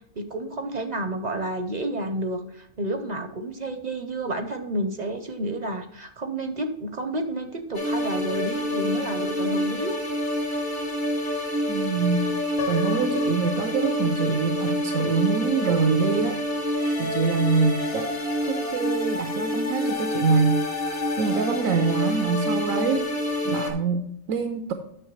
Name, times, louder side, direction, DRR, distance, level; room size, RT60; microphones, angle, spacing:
voice 1, 0.2-10.0, right 1 dB, 50° right, 7 dB, 0.5 m, -30 dB
sound 1, 7.7-23.7, left 1 dB, 70° left, 2.0 m, -27 dB
voice 2, 11.7-12.3 12.7-16.4 17.0-18.1 18.4-23.1 23.4-24.7, right 5 dB, 85° right, 7 dB, 1.0 m, -25 dB
Piano, 12.6-14.6, left 6 dB, 50° left, 0.8 m, -35 dB
9.0 x 6.4 x 3.1 m, 0.76 s
omnidirectional pair, 1.4 m